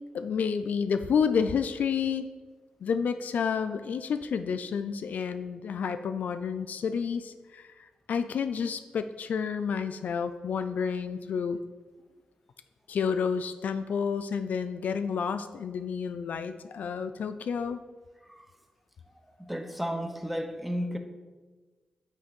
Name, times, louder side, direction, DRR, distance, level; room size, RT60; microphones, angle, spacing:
voice 1, 0.1-2.3 2.8-11.6 12.9-17.8, left 6 dB, 70° left, 11 dB, 0.3 m, -30 dB
voice 2, 19.4-21.0, equal, 5° right, 6 dB, 0.8 m, -33 dB
8.3 x 3.1 x 5.2 m, 1.3 s
cardioid pair, 65°, 3 cm